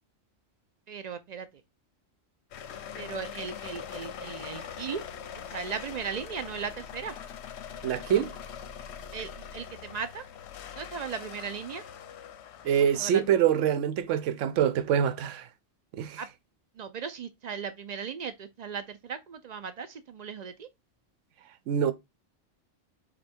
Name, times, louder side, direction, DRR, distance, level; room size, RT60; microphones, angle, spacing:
voice 1, 0.9-1.5 3.0-5.0 5.5-7.1 9.1-10.2 10.8-11.8 13.0-13.2 16.2-16.3 16.8-20.7, right 6 dB, 60° right, 0.4 m, -37 dB
sound 1, 2.5-13.4, left 8 dB, 70° left, 0.8 m, -42 dB
voice 2, 7.8-8.3 12.6-15.5 15.9-16.2 21.7-21.9, right 9 dB, 90° right, 0.9 m, -25 dB
5.1 x 2.3 x 4.4 m
omnidirectional pair, 1.2 m